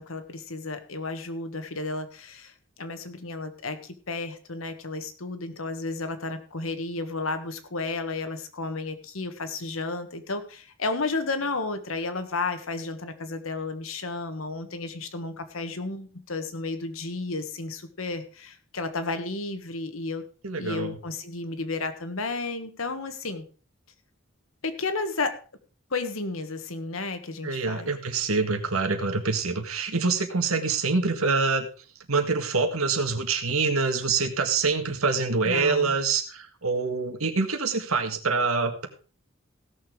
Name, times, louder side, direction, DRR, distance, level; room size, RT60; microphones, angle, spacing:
voice 1, 0.0-20.2 20.5-23.4 24.6-25.4 25.9-27.9 35.4-36.0, left 3 dB, 75° left, 9 dB, 1.5 m, -32 dB
voice 2, 20.4-21.0 27.4-31.7 32.1-38.9, right 4 dB, 90° right, 7 dB, 1.8 m, -25 dB
16.5 x 6.8 x 4.8 m, 0.38 s
head